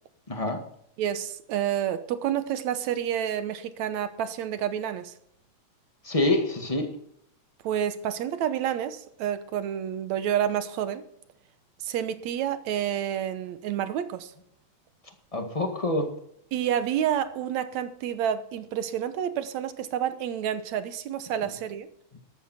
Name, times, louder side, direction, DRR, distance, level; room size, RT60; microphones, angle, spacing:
voice 1, 0.3-0.6 6.0-6.9 15.3-16.1, left 2 dB, 15° left, 1.4 m, -26 dB
voice 2, 1.0-5.1 7.6-11.1 11.8-14.3 16.5-21.9, right 10 dB, 70° right, 2.2 m, -29 dB
13.5 x 12.5 x 4.3 m
omnidirectional pair, 3.4 m